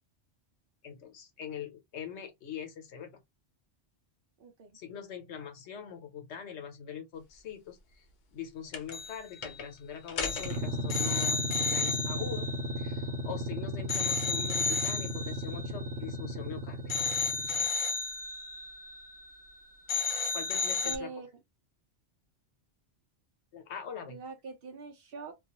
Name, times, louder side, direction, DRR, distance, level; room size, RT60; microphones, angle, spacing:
voice 1, 0.8-3.1 4.7-8.0 8.3-12.5 12.8-17.1 20.3-21.1 23.5-24.2, left 8 dB, 75° left, 1.0 m, -42 dB
voice 2, 4.4-4.8 20.8-21.3 24.0-25.3, right 3 dB, 60° right, 0.7 m, -43 dB
sound 1, 8.7-9.2 9.4-9.6 10.1-13.5 13.9-16.5 16.9-19.6 19.9-21.0, left 4 dB, 55° left, 0.6 m, -33 dB
sound 2, 10.3-17.7, equal, 75° right, 1.0 m, -36 dB
2.3 x 2.2 x 2.9 m
omnidirectional pair, 1.2 m